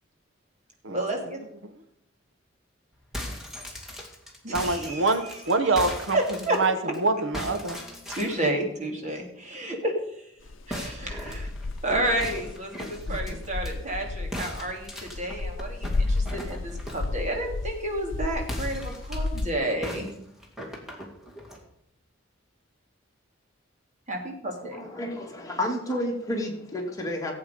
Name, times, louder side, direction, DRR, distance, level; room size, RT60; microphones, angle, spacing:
voice 1, 0.9-1.4 4.4-5.4 6.1-6.6 8.2-9.9 10.7-11.5 11.8-20.1 24.1-24.8, right 1 dB, 40° right, 1 dB, 2.9 m, -30 dB
sound 1, 3.0-7.0 7.3-8.5 10.7-13.7 14.3-17.1 18.4-19.4 19.8-21.6, equal, ahead, 2.5 m, -38 dB
voice 2, 4.5-6.2 6.6-6.7 7.0-7.8 13.1-13.4, right 3 dB, 70° right, 9 dB, 1.1 m, -25 dB
sound 2, 10.5-19.5, left 2 dB, 75° left, 0.7 m, -32 dB
voice 3, 24.5-27.4, left 1 dB, 20° left, 0 dB, 2.5 m, -31 dB
17.0 x 8.4 x 5.2 m, 0.76 s
head